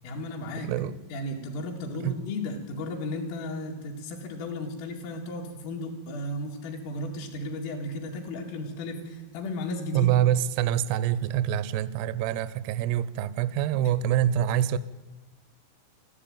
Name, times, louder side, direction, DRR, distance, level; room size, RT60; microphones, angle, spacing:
voice 1, 0.0-0.7 1.1-10.1, left 1 dB, 80° left, 0 dB, 4.8 m, -34 dB
voice 2, 0.6-1.0 2.0-2.2 9.9-14.8, right 11 dB, 85° right, 15 dB, 2.3 m, -25 dB
22.5 x 14.5 x 8.9 m, 1.1 s
omnidirectional pair, 5.8 m